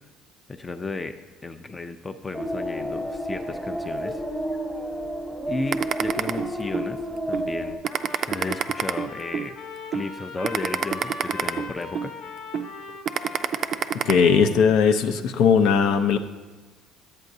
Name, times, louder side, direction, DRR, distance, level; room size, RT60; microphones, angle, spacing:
voice 1, 0.5-1.1 1.4-4.2 5.5-7.0 7.3-7.8 8.3-9.6 9.9-12.1, left 3 dB, 20° left, 8 dB, 0.4 m, -33 dB
sound 1, 2.3-7.8, equal, 5° left, 0.9 m, -31 dB
sound 2, 5.7-6.9 7.3-7.5 7.8-9.5 9.9-10.1 10.4-12.1 12.5-12.7 13.1-14.1, right 9 dB, 55° right, 0.3 m, -26 dB
Trumpet, 7.8-14.6, left 4 dB, 60° left, 1.0 m, -39 dB
voice 2, 14.1-16.2, left 6 dB, 75° left, 7 dB, 0.5 m, -18 dB
11.0 x 8.4 x 2.7 m, 1.3 s
cardioid pair, 115°, 0 cm